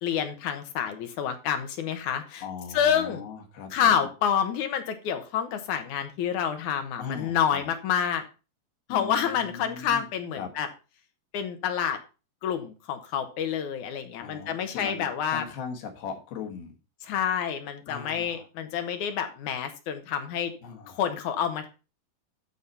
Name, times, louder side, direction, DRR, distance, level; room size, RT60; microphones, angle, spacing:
voice 1, 0.0-2.4 2.7-3.2 3.7-8.2 8.9-10.7 11.3-12.0 12.4-15.4 17.0-20.5 21.0-21.7, left 8 dB, 70° left, 7 dB, 2.2 m, -28 dB
voice 2, 2.4-4.1 7.0-7.7 8.9-10.1 10.4-10.5 14.2-16.8 17.9-18.5 20.6-21.0, left 6 dB, 85° left, 4 dB, 3.4 m, -39 dB
12.0 x 4.2 x 5.5 m, 0.32 s
omnidirectional pair, 4.2 m